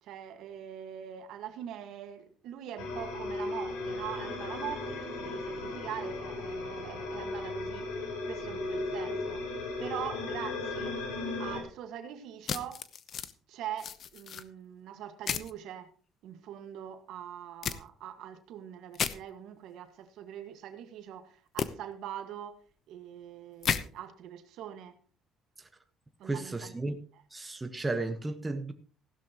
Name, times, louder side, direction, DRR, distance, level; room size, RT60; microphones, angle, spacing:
voice 1, 0.0-9.5 9.8-11.0 11.4-12.8 13.5-15.9 16.2-22.6 22.9-25.0 26.2-27.2, right 10 dB, 75° right, 1.7 m, -43 dB
sound 1, 2.8-11.6, left 3 dB, 90° left, 4.1 m, -36 dB
sound 2, 12.5-13.3 13.8-14.4 15.3-15.5 17.6-17.8 18.9-19.1 21.6-21.7 23.6-23.8, left 8 dB, 50° left, 0.9 m, -32 dB
voice 2, 26.2-27.0 27.3-28.7, right 2 dB, 15° right, 1.2 m, -34 dB
15.5 x 11.5 x 3.0 m
cardioid pair, 105°, 0 cm